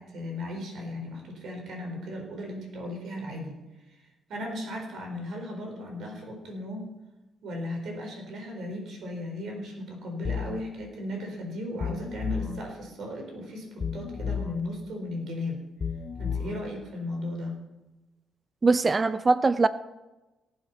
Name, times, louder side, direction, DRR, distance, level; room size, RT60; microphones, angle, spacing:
voice 1, 0.0-3.6 3.9-4.0 4.3-6.9 7.4-15.6 16.2-17.6, left 1 dB, 70° right, 1 dB, 4.7 m, -36 dB
sound 1, 10.2-10.6 11.8-12.6 13.8-14.6 15.8-16.6, left 6 dB, 40° left, 0.9 m, -32 dB
voice 2, 18.6-19.7, right 3 dB, 30° right, 14 dB, 0.5 m, -22 dB
18.0 x 7.5 x 5.8 m, 1.0 s
cardioid pair, 90°, 0 cm